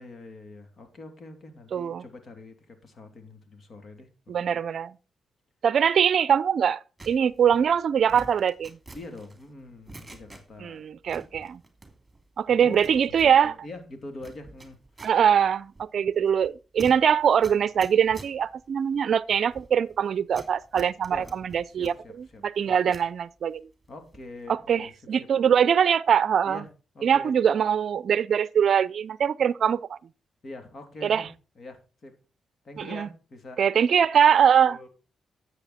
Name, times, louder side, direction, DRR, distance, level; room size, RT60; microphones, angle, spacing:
voice 1, 0.0-4.6 8.9-10.9 12.5-15.2 21.1-21.3 21.7-22.9 23.9-25.3 26.4-26.7 26.9-27.3 30.4-31.3 31.6-32.2 32.6-33.6 34.7-34.9, left 2 dB, 55° left, 3.0 m, -44 dB
voice 2, 1.7-2.0 4.3-4.9 5.6-6.8 7.1-8.8 10.6-11.6 12.4-13.5 15.0-21.9 22.4-23.7 24.5-26.6 27.0-30.0 31.0-31.2 32.8-33.1 33.6-34.8, right 8 dB, 65° right, 0.5 m, -22 dB
sound 1, 7.0-10.7 11.0-12.2 12.5-23.1 23.5-24.4 24.6-24.9, right 2 dB, 15° right, 3.0 m, -48 dB
10.5 x 7.9 x 4.3 m
cardioid pair, 70°, 0 cm